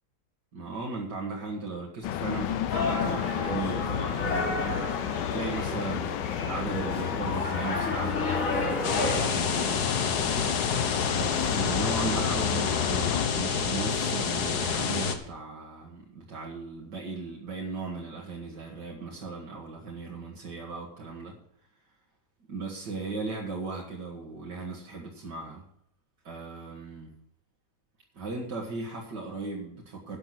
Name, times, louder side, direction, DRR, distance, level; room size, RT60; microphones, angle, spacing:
voice 1, 0.5-10.3 11.1-21.4 22.5-25.6 26.2-27.1 28.1-30.2, right 4 dB, 80° right, -2 dB, 2.5 m, -37 dB
sound 1, 2.0-13.3, left 11 dB, 85° left, 1.3 m, -32 dB
sound 2, 2.7-9.3, left 2 dB, 50° left, 2.2 m, -31 dB
sound 3, 8.8-15.2, left 6 dB, 65° left, 1.6 m, -28 dB
11.5 x 6.1 x 7.8 m, 0.68 s
omnidirectional pair, 1.8 m